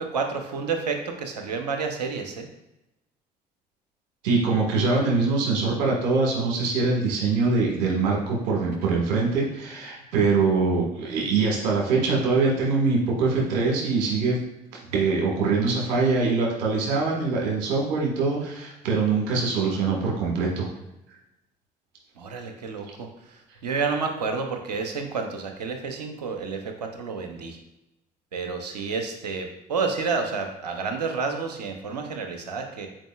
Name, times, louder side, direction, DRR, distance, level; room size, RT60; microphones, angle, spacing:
voice 1, 0.0-2.5 22.2-27.6 28.3-32.9, right 4 dB, 90° right, 4 dB, 0.8 m, -30 dB
voice 2, 4.2-14.4 14.9-20.7, right 4 dB, 75° right, -3 dB, 1.7 m, -23 dB
8.9 x 4.6 x 2.4 m, 0.91 s
hypercardioid pair, 55°, 20 cm